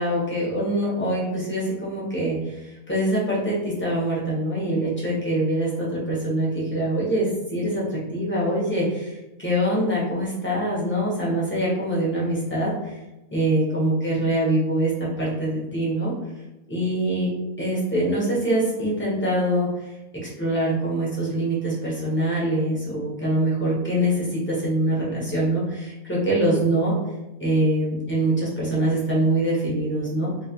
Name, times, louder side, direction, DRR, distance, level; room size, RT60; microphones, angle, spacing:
voice 1, 0.0-13.0 13.3-14.9 15.2-16.1 16.7-17.3 17.6-19.7 20.2-26.9 27.4-30.3, right 1 dB, 10° left, -6 dB, 0.8 m, -24 dB
3.1 x 2.9 x 2.9 m, 0.98 s
omnidirectional pair, 1.5 m